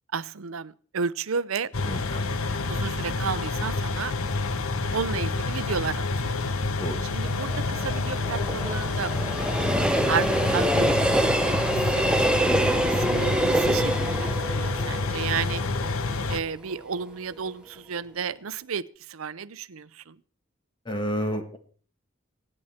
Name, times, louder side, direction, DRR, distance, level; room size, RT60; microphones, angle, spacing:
voice 1, 0.1-1.7 2.7-4.1 4.9-6.4 7.1-9.1 10.1-11.6 11.9-15.6 16.3-20.2, right 6 dB, 80° right, 18 dB, 0.7 m, -32 dB
sound 1, 1.7-16.4, left 3 dB, 85° left, 1.0 m, -28 dB
voice 2, 1.8-2.2 6.8-7.0 20.8-21.6, equal, 20° left, 7 dB, 1.6 m, -30 dB
Train, 7.3-16.3 16.7-16.8, right 1 dB, 5° right, 0.6 m, -26 dB
24.5 x 9.9 x 4.3 m, 0.44 s
head